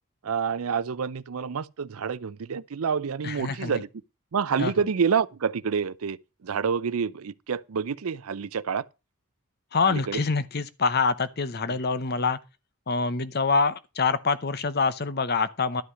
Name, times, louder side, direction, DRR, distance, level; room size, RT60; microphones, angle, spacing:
voice 1, 0.2-3.9 4.3-8.8 9.8-10.2, right 6 dB, 75° right, 0.5 m, -28 dB
voice 2, 3.2-3.8 4.6-4.7 9.7-12.4 12.9-15.8, left 4 dB, 45° left, 0.8 m, -25 dB
11.5 x 5.7 x 6.2 m
head